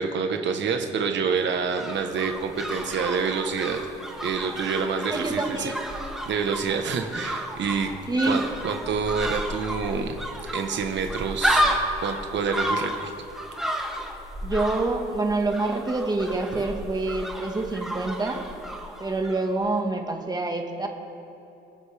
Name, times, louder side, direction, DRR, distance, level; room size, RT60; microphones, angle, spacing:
voice 1, 0.0-3.8 4.2-5.7 6.3-7.9 8.3-10.2 10.5-11.7 12.0-13.1, right 5 dB, 65° right, 5 dB, 1.2 m, -27 dB
sound 1, 1.3-19.5 19.7-19.8, equal, ahead, 1.8 m, -32 dB
voice 2, 5.1-5.9 8.1-8.4 14.4-18.4 19.0-20.9, right 2 dB, 20° right, 3 dB, 1.6 m, -26 dB
27.0 x 9.8 x 3.5 m, 2.9 s
cardioid pair, 90°, 20 cm